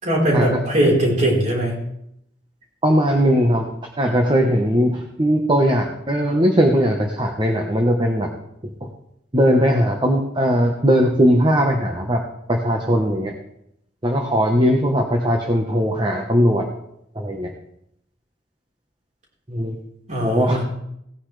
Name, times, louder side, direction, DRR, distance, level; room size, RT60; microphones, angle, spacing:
voice 1, 0.0-1.7 20.1-20.6, right 1 dB, 45° right, -3 dB, 4.3 m, -19 dB
voice 2, 2.8-3.7 4.0-8.3 8.6-8.9 9.3-12.2 12.5-13.3 14.0-16.6 17.1-17.5 19.5-19.8 20.2-20.6, equal, 25° right, 1 dB, 1.1 m, -19 dB
17.5 x 9.7 x 3.3 m, 0.77 s
head